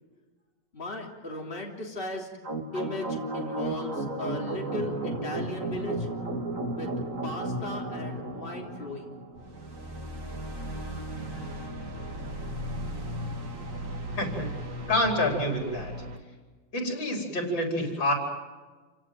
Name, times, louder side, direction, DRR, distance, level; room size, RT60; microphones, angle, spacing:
voice 1, 0.7-2.3 2.7-3.1 3.3-6.1 6.7-6.9 7.2-9.1, left 2 dB, 30° left, -1 dB, 3.7 m, -37 dB
sound 1, 2.4-16.2, right 1 dB, 40° right, 3.1 m, -35 dB
voice 2, 14.1-14.5 14.9-15.9 16.7-18.1, left 1 dB, 80° left, 2 dB, 5.6 m, -27 dB
28.5 x 17.5 x 9.2 m, 1.3 s
omnidirectional pair, 2.1 m